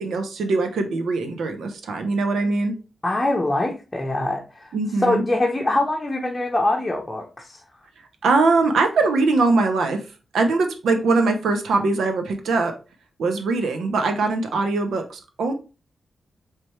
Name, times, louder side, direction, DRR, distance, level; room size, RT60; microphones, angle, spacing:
voice 1, 0.0-2.8 4.7-5.2 8.2-10.0 10.3-12.7 13.2-15.5, right 3 dB, 85° right, 6 dB, 0.7 m, -21 dB
voice 2, 3.0-4.7 5.0-7.6, left 2 dB, 20° left, 0 dB, 0.8 m, -23 dB
4.3 x 3.3 x 3.1 m, 0.32 s
cardioid pair, 65°, 0 cm